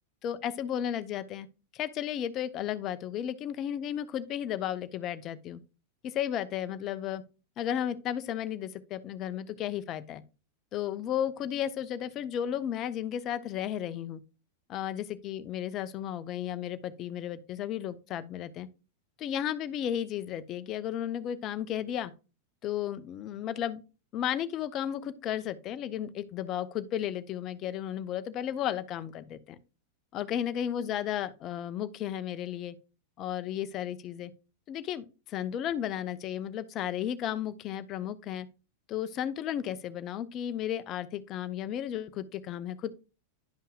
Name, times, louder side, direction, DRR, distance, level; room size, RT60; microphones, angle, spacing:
voice 1, 0.2-1.5 1.7-5.6 6.0-7.2 7.6-10.2 10.7-14.2 14.7-18.7 19.2-22.1 22.6-23.8 24.1-29.6 30.1-32.7 33.2-34.3 34.7-38.5 38.9-43.0, left 10 dB, 35° left, 0.7 m, -34 dB
11.0 x 5.5 x 2.3 m
figure-of-eight pair, 90°, 0 cm